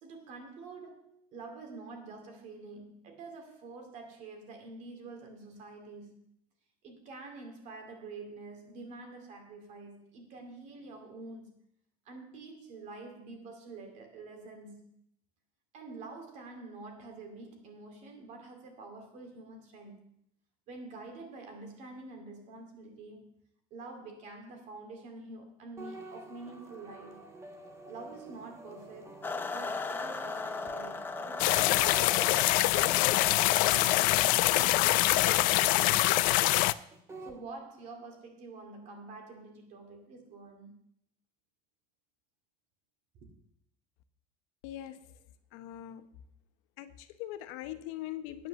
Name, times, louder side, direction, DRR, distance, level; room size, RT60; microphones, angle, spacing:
voice 1, 0.0-6.3 6.8-11.5 12.0-14.9 15.7-20.1 20.7-23.4 23.7-27.2 27.9-32.3 32.7-36.6 37.2-40.7 43.2-43.3, right 3 dB, 45° right, 4 dB, 2.5 m, -47 dB
sound 1, 25.8-37.4, right 2 dB, 15° right, 1.1 m, -48 dB
sound 2, 29.2-34.3, left 4 dB, 10° left, 0.6 m, -38 dB
sound 3, 31.4-36.7, left 19 dB, 55° left, 0.4 m, -24 dB
voice 2, 44.6-45.1 45.5-46.1 46.8-48.5, left 13 dB, 80° left, 10 dB, 1.0 m, -41 dB
9.4 x 8.4 x 6.8 m, 0.71 s
cardioid pair, 165°, 17 cm